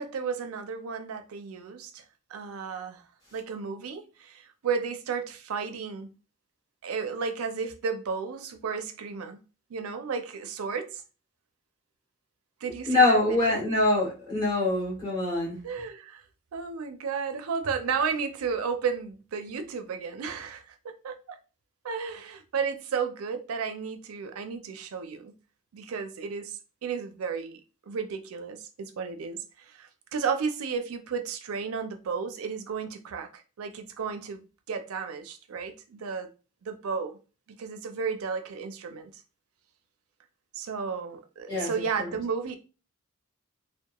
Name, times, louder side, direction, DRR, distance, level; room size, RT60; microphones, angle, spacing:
voice 1, 0.0-2.0 2.3-3.0 3.3-6.1 6.8-9.4 9.7-11.0 12.6-13.7 15.6-16.2 16.5-21.4 21.8-25.3 25.7-27.6 27.9-36.3 36.6-37.2 37.5-39.2 40.5-42.6, right 5 dB, 80° right, 0.4 m, -33 dB
voice 2, 12.9-15.6 41.5-41.7 42.0-42.1, left 2 dB, 20° left, 1.3 m, -24 dB
2.9 x 2.1 x 2.2 m
head